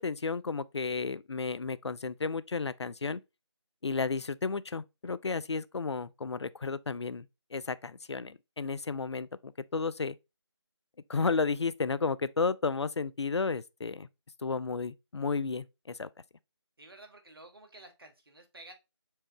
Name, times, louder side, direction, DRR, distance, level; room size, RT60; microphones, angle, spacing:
voice 1, 0.0-3.2 3.8-7.3 7.5-10.2 11.1-14.1 14.4-16.1, left 4 dB, 70° left, 0.4 m, -32 dB
voice 2, 16.8-18.7, right 2 dB, 55° right, 1.2 m, -52 dB
4.6 x 3.7 x 3.1 m
figure-of-eight pair, 165°, 15 cm